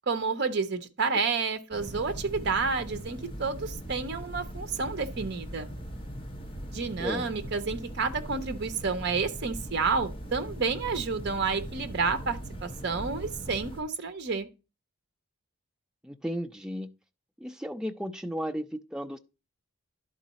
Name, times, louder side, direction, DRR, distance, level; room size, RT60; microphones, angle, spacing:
voice 1, 0.1-5.7 6.7-14.5, right 4 dB, 50° right, 0.7 m, -30 dB
sound 1, 1.7-13.8, equal, 25° left, 0.9 m, -40 dB
voice 2, 16.0-16.9 17.4-19.2, equal, 5° right, 0.4 m, -34 dB
11.0 x 3.8 x 4.1 m
head